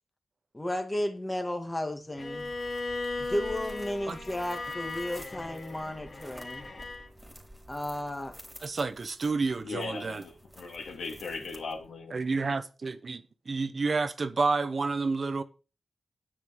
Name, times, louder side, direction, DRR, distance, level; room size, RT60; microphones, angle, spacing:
voice 1, 0.5-2.5 3.2-6.7 7.7-8.3, left 1 dB, 10° left, 1.8 m, -33 dB
Bowed string instrument, 2.2-7.1, left 3 dB, 40° left, 2.4 m, -37 dB
sound 1, 2.2-12.0, right 1 dB, 10° right, 3.0 m, -51 dB
voice 2, 8.6-10.2 12.1-15.4, right 4 dB, 40° right, 0.8 m, -30 dB
voice 3, 9.6-12.4, left 4 dB, 85° left, 3.0 m, -38 dB
9.8 x 9.5 x 4.8 m
wide cardioid pair, 135°, 0 cm